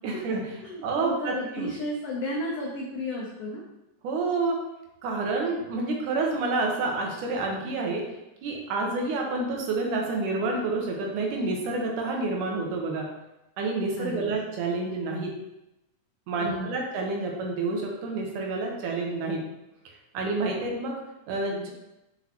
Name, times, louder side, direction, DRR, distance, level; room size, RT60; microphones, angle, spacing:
voice 1, 0.0-0.4 0.8-1.7 4.0-4.6 5.0-8.0 8.4-13.1 13.6-15.3 16.3-19.4 20.1-20.9 21.3-21.7, right 3 dB, 75° right, 0 dB, 2.4 m, -28 dB
voice 2, 0.6-3.6 14.0-14.3 16.4-16.7, left 1 dB, 80° left, -2 dB, 1.3 m, -33 dB
6.1 x 5.3 x 2.9 m, 0.93 s
omnidirectional pair, 3.7 m